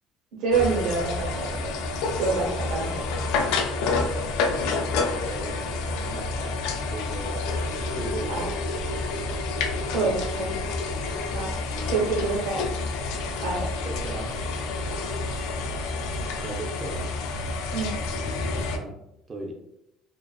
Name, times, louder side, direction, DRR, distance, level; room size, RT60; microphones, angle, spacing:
voice 1, 0.4-1.7 2.2-2.9 8.3-8.5 9.9-10.5 11.3-11.5 11.9-12.6 13.4-13.7 17.7-17.9, right 4 dB, 80° right, -2 dB, 0.8 m, -26 dB
sound 1, 0.5-18.8, left 3 dB, 85° left, 0.3 m, -29 dB
voice 2, 3.8-4.3 4.8-5.7 6.0-6.6 6.9-7.4 7.8-8.5 11.4-12.1 13.9-14.3 16.4-17.0 18.5-18.9 19.3-19.5, right 2 dB, 20° right, -1 dB, 0.3 m, -38 dB
sound 2, 4.5-18.0, right 1 dB, 60° left, 0.6 m, -39 dB
2.3 x 2.3 x 2.2 m, 0.79 s
cardioid pair, 175°, 0 cm